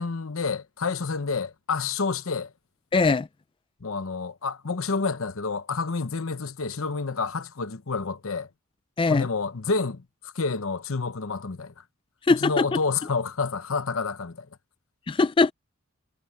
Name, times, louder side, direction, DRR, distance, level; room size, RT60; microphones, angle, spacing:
voice 1, 0.0-2.5 3.8-8.5 9.1-11.8 12.3-14.5, left 4 dB, 65° left, 0.9 m, -29 dB
voice 2, 2.9-3.3 9.0-9.3 12.3-12.7 15.1-15.5, left 3 dB, 25° left, 0.3 m, -21 dB
head